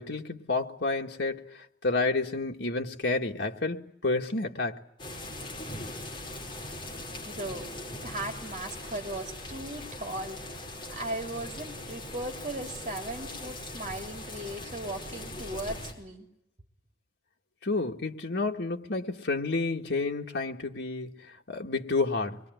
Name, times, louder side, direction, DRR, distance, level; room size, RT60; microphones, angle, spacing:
voice 1, 0.0-4.8 17.6-22.4, left 3 dB, 90° left, 1.9 m, -30 dB
sound 1, 5.0-15.9, left 1 dB, 30° left, 5.7 m, -40 dB
voice 2, 7.3-16.3, right 1 dB, 40° right, 3.2 m, -38 dB
25.0 x 22.0 x 9.3 m
head